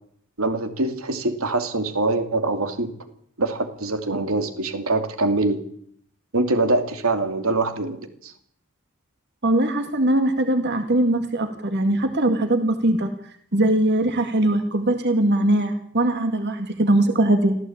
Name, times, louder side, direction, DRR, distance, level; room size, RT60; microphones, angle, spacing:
voice 1, 0.4-2.9 3.4-5.6 6.3-8.3, right 2 dB, 80° right, 8 dB, 2.6 m, -24 dB
voice 2, 9.4-13.1 13.5-17.6, right 1 dB, 55° right, 7 dB, 2.0 m, -21 dB
25.0 x 15.5 x 8.8 m, 0.67 s
head